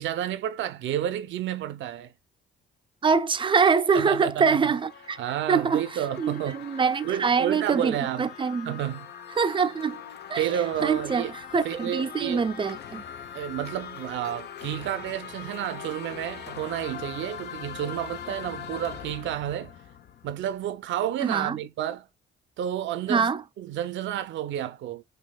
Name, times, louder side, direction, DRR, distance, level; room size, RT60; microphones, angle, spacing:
voice 1, 0.0-2.1 3.9-4.7 5.2-6.6 7.0-8.3 8.6-9.1 10.3-11.3 11.6-12.5 13.3-19.7 20.2-22.1 22.6-23.3 23.6-25.0, right 11 dB, 70° right, 0.6 m, -30 dB
voice 2, 3.0-5.2 5.5-5.8 6.2-8.8 9.4-10.0 10.3-10.5 10.8-11.2 11.5-13.0 21.2-21.6 23.1-23.4, right 5 dB, 25° right, 0.4 m, -24 dB
sound 1, 3.8-20.8, left 8 dB, 55° left, 0.6 m, -42 dB
3.6 x 2.9 x 2.2 m
cardioid pair, 90°, 20 cm